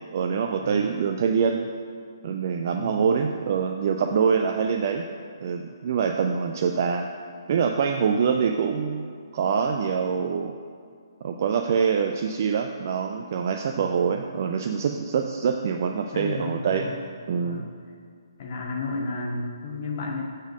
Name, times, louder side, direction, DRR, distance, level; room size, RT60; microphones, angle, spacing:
voice 1, 0.1-1.7 2.2-5.0 5.4-7.1 7.5-10.5 11.2-16.9 17.3-17.7, right 6 dB, 40° right, 4 dB, 0.4 m, -25 dB
voice 2, 16.1-17.0 17.4-17.6 18.4-20.2, left 3 dB, 35° left, 0 dB, 1.2 m, -32 dB
7.9 x 4.3 x 6.3 m, 2.1 s
figure-of-eight pair, 135°, 2 cm